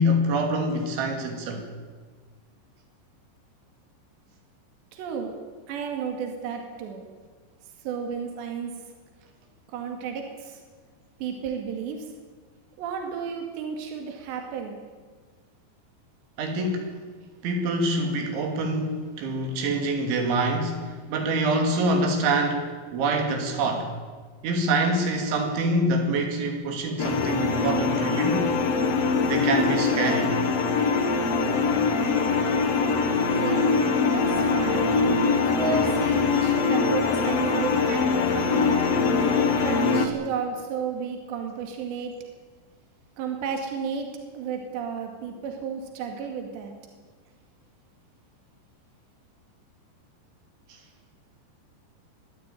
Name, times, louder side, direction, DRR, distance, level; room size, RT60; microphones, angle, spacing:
voice 1, 0.0-1.7 16.4-17.0 17.4-23.9 24.4-28.5 29.2-30.3 50.7-50.8, right 1 dB, 90° right, 3 dB, 5.0 m, -25 dB
voice 2, 4.9-5.3 5.7-7.0 7.8-8.7 9.7-10.6 11.2-12.1 12.8-14.8 33.3-34.9 35.4-38.8 39.5-42.1 43.2-44.1 44.3-46.7, right 6 dB, 75° right, 3 dB, 4.4 m, -32 dB
sound 1, 27.0-40.1, left 4 dB, 70° left, 1.5 m, -23 dB
22.5 x 14.0 x 9.1 m, 1.5 s
omnidirectional pair, 5.2 m